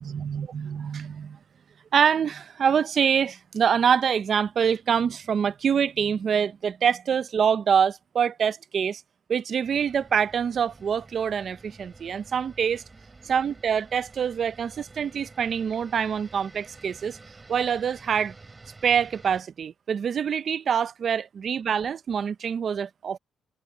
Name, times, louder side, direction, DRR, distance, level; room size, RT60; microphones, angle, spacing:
voice 1, 0.0-1.4 1.9-9.0 9.3-12.8 13.2-17.2 17.5-18.3 18.8-23.2, right 7 dB, 50° right, 0.6 m, -25 dB
sound 1, 9.6-19.4, right 3 dB, 25° right, 6.3 m, -50 dB
cardioid pair, 90°, 0 cm